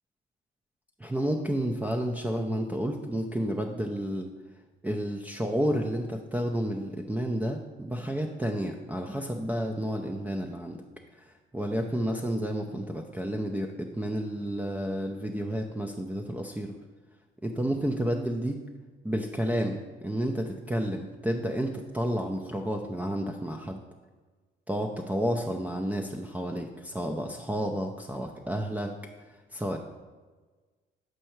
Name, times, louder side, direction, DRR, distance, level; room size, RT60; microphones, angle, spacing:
voice 1, 1.0-4.3 4.8-10.8 11.2-16.7 17.4-18.6 19.0-23.8 24.7-28.9 29.5-29.8, equal, 10° right, 2 dB, 0.4 m, -31 dB
6.5 x 4.5 x 4.5 m, 1.4 s
cardioid pair, 90°, 20 cm